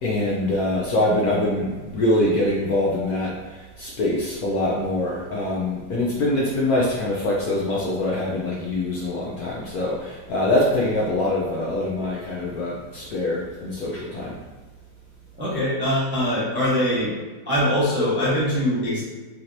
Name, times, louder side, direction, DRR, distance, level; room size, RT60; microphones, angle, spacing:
voice 1, 0.0-14.4, left 1 dB, 70° left, -4 dB, 0.9 m, -24 dB
voice 2, 15.4-17.1 17.5-19.0, equal, 10° right, -8 dB, 0.5 m, -22 dB
4.3 x 2.9 x 2.6 m, 1.3 s
omnidirectional pair, 2.1 m